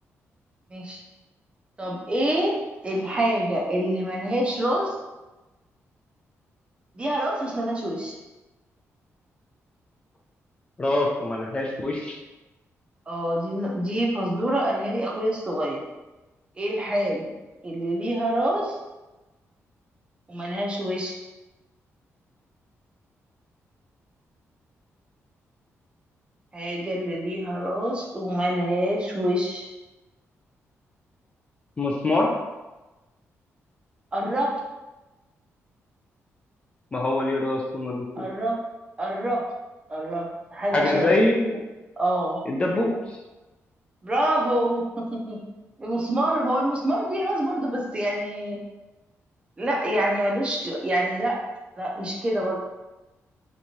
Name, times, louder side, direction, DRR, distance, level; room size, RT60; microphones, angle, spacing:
voice 1, 0.7-1.0 1.8-5.0 6.9-8.2 13.1-15.8 16.6-17.3 17.6-18.8 20.3-21.2 26.5-29.7 34.1-34.6 38.2-38.6 39.0-39.4 39.9-41.2 42.0-42.4 44.0-45.4 45.8-48.6 49.6-51.4 51.8-52.5, right 1 dB, 20° right, -2 dB, 0.6 m, -26 dB
voice 2, 10.8-12.2 31.8-32.3 36.9-38.3 40.7-41.6 42.5-43.0, left 2 dB, 25° left, -1 dB, 0.4 m, -24 dB
3.4 x 3.0 x 2.8 m, 1.1 s
wide cardioid pair, 150°, 5 cm